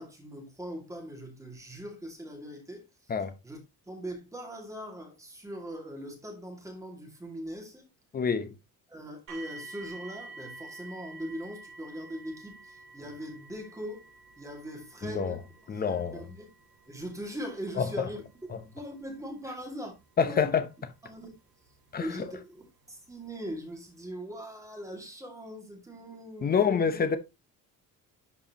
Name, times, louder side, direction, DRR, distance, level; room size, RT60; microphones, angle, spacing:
voice 1, 0.0-3.1 3.4-3.6 3.9-7.8 8.9-14.1 14.4-15.4 15.9-16.5 16.9-19.9 20.3-20.5 21.0-21.3 22.0-26.8, equal, 10° right, 2.3 m, -41 dB
voice 2, 8.1-8.5 15.0-15.4 15.7-16.2 17.8-17.9 20.2-20.7 21.9-22.3 26.4-27.2, left 6 dB, 25° left, 0.9 m, -27 dB
sound 1, 9.3-22.2 23.0-23.1 23.7-23.8, right 3 dB, 75° right, 2.8 m, -50 dB
11.5 x 4.7 x 2.9 m
cardioid pair, 165°, 36 cm